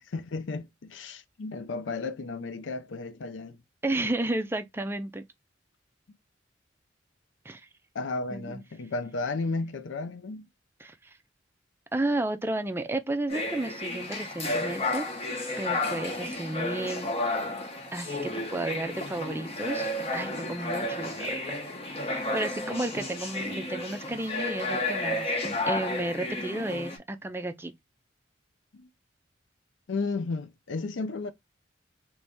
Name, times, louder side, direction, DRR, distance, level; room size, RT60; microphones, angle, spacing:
voice 1, 0.0-3.6 7.9-10.5 28.7-28.9 29.9-31.3, left 3 dB, 75° left, 0.5 m, -33 dB
voice 2, 3.8-5.2 7.4-7.7 8.3-8.6 10.8-11.1 11.9-15.1 15.6-17.1 17.9-21.6 22.0-27.7, right 2 dB, 10° right, 0.4 m, -32 dB
sound 1, 13.3-27.0, left 2 dB, 30° left, 0.9 m, -32 dB
3.0 x 2.7 x 3.5 m
head